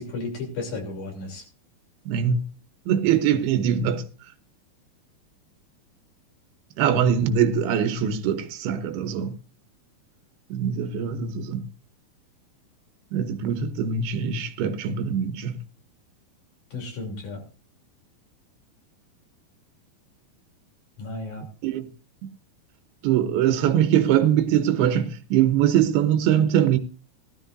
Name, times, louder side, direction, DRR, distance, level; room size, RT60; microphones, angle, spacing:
voice 1, 0.0-1.4 16.7-17.4 21.0-21.4, left 3 dB, 55° left, 4.4 m, -33 dB
voice 2, 2.1-2.4 2.9-4.1 6.8-9.4 10.5-11.7 13.1-15.6 21.6-21.9 22.2-22.3 23.0-26.8, right 9 dB, 80° right, 2.9 m, -22 dB
18.0 x 12.5 x 2.6 m
omnidirectional pair, 4.4 m